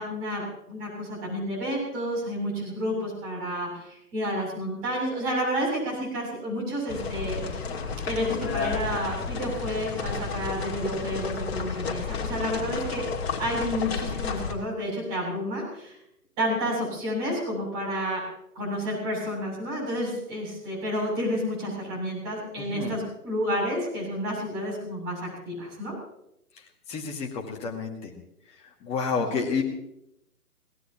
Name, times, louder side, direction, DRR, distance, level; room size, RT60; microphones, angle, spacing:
voice 1, 0.0-7.7 8.0-13.0 13.4-16.0 16.4-18.2 18.5-25.9 29.2-29.4, equal, 20° right, -3 dB, 7.7 m, -30 dB
sound 1, 6.9-14.5, left 5 dB, 40° left, 2.3 m, -32 dB
voice 2, 22.6-23.0 26.9-28.1 28.8-29.6, left 5 dB, 15° left, 1 dB, 1.7 m, -30 dB
22.5 x 17.5 x 3.0 m, 0.81 s
figure-of-eight pair, 135°, 46 cm